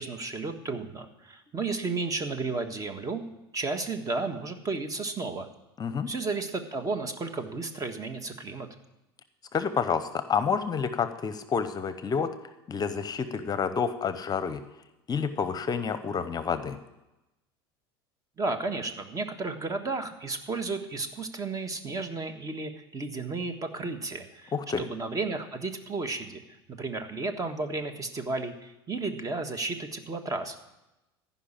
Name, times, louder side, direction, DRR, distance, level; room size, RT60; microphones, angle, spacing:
voice 1, 0.0-3.2 3.5-5.5 6.1-8.7 18.4-26.4 26.7-30.6, right 3 dB, 25° right, 8 dB, 1.5 m, -33 dB
voice 2, 5.8-6.1 9.5-12.3 12.7-14.6 15.1-16.8 24.5-24.8, left 6 dB, 30° left, 11 dB, 0.8 m, -29 dB
15.0 x 5.6 x 8.8 m, 0.95 s
hypercardioid pair, 80°, 13 cm